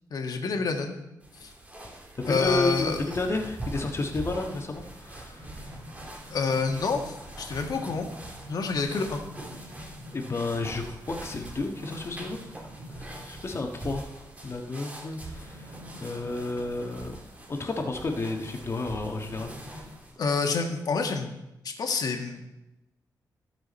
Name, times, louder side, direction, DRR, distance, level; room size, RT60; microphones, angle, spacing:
voice 1, 0.1-1.0 1.4-1.5 2.3-3.0 6.3-8.1 8.5-9.2 20.2-21.4 21.6-22.4, left 4 dB, 65° left, 3 dB, 1.7 m, -28 dB
sound 1, 1.2-20.2, right 1 dB, 20° right, 2.2 m, -43 dB
voice 2, 2.2-5.5 6.2-6.3 10.1-12.4 12.9-14.1 14.4-15.7 16.0-17.1 17.5-19.6, left 3 dB, 40° left, 3 dB, 1.5 m, -31 dB
sound 2, 4.7-20.0, equal, 75° right, 2.1 m, -48 dB
18.5 x 6.2 x 4.3 m, 0.94 s
cardioid pair, 100°, 7 cm